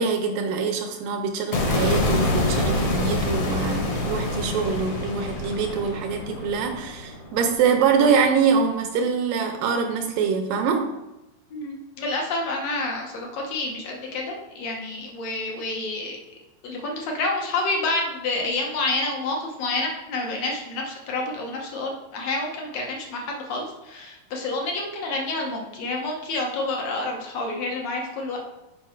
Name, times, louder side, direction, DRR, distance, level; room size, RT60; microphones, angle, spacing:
voice 1, 0.0-10.8, right 5 dB, 80° right, 4 dB, 2.1 m, -24 dB
sound 1, 1.5-7.8, left 1 dB, 55° left, 1.6 m, -26 dB
voice 2, 11.5-16.2 16.6-28.4, left 2 dB, 75° left, 0 dB, 1.5 m, -28 dB
8.3 x 5.3 x 4.5 m, 0.96 s
omnidirectional pair, 4.8 m